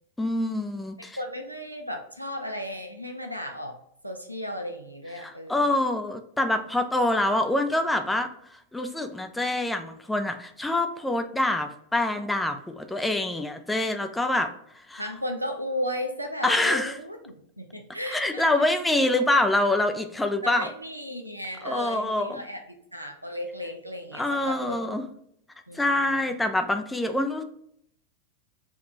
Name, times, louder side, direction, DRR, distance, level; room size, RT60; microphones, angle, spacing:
voice 1, 0.2-1.2 5.2-8.3 8.7-14.5 14.9-15.0 16.4-16.9 18.1-20.7 21.6-22.4 24.1-25.1 25.7-27.4, left 1 dB, 5° left, 6 dB, 0.4 m, -25 dB
voice 2, 1.0-3.8 4.0-5.8 15.0-18.6 20.4-25.0 25.7-26.3, equal, 90° right, 5 dB, 0.5 m, -35 dB
3.6 x 2.3 x 4.0 m, 0.70 s
figure-of-eight pair, 90°, 0 cm